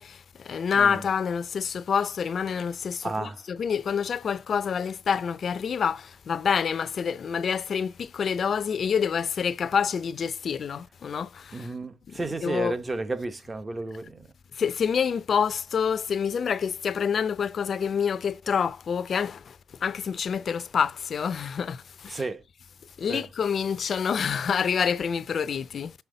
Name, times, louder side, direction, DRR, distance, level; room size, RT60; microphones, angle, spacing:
voice 1, 0.0-11.7 12.1-12.8 14.6-22.3 23.0-25.9, left 7 dB, 50° left, 0.6 m, -27 dB
voice 2, 0.7-1.1 3.0-3.4 11.5-14.3 22.1-22.4 23.1-23.3, right 2 dB, 25° right, 0.9 m, -32 dB
6.0 x 5.7 x 3.9 m
cardioid pair, 90°, 0 cm